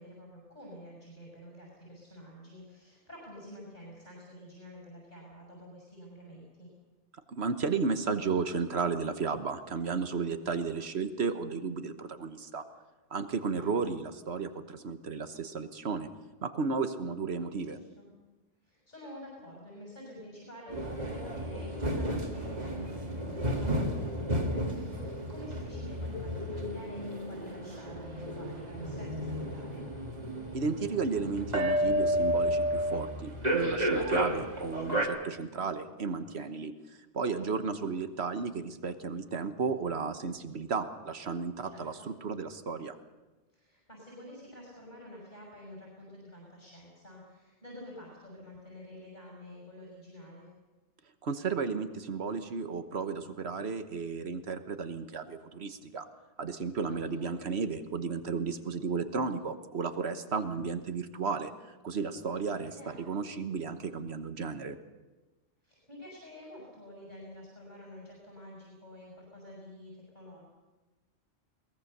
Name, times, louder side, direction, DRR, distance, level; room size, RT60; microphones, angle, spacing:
voice 1, 0.0-6.7 13.5-13.7 17.7-18.1 18.6-29.8 37.4-37.8 41.6-42.1 43.5-50.5 57.0-57.3 62.3-63.1 65.6-70.4, equal, 40° left, -2 dB, 6.3 m, -49 dB
voice 2, 7.3-12.6 13.1-16.1 16.4-17.8 30.5-36.7 37.1-43.0 51.2-56.1 56.4-62.7 63.0-64.8, right 5 dB, 65° right, 9 dB, 1.4 m, -33 dB
sound 1, 20.7-35.1, equal, 35° right, 2.4 m, -32 dB
22.0 x 19.0 x 6.7 m, 1.2 s
omnidirectional pair, 1.2 m